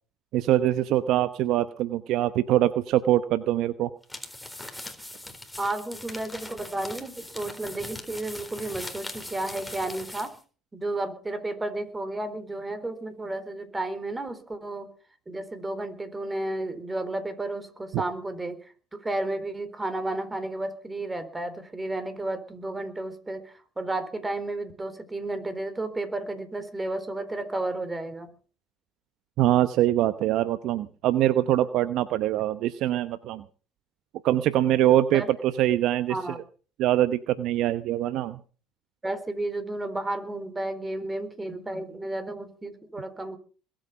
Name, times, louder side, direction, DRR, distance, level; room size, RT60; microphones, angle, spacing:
voice 1, 0.3-3.9 17.9-18.0 29.4-33.4 34.2-35.2 35.6-36.2 36.8-38.4, right 13 dB, 60° right, 13 dB, 0.9 m, -23 dB
sound 1, 4.0-10.4, left 1 dB, 5° left, 4.0 m, -41 dB
voice 2, 5.6-10.3 10.7-14.9 15.3-28.3 35.1-35.3 36.1-36.4 39.0-43.4, right 2 dB, 15° right, 11 dB, 4.0 m, -32 dB
21.5 x 9.0 x 5.8 m, 0.39 s
hypercardioid pair, 75°, 0 cm